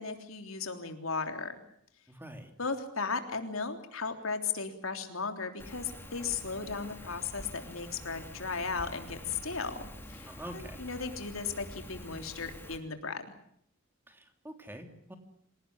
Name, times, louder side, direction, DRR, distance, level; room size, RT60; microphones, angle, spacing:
voice 1, 0.0-1.6 2.6-13.3, left 4 dB, 85° left, 6 dB, 3.5 m, -36 dB
voice 2, 2.1-2.5 10.3-10.8 14.1-15.2, equal, 10° right, 6 dB, 3.2 m, -46 dB
Rain, 5.6-12.8, left 1 dB, 10° left, 3.9 m, -47 dB
27.0 x 18.0 x 9.9 m, 0.68 s
head